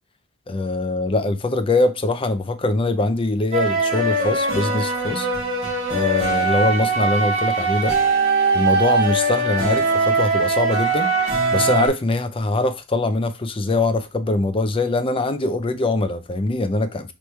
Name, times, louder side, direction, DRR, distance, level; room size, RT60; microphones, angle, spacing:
voice 1, 0.5-5.3 5.9-7.9 8.5-11.1 11.5-17.1, left 2 dB, 25° left, 0.5 m, -22 dB
sound 1, 3.5-11.9, right 3 dB, 30° right, 2.2 m, -21 dB
4.5 x 3.1 x 3.2 m
head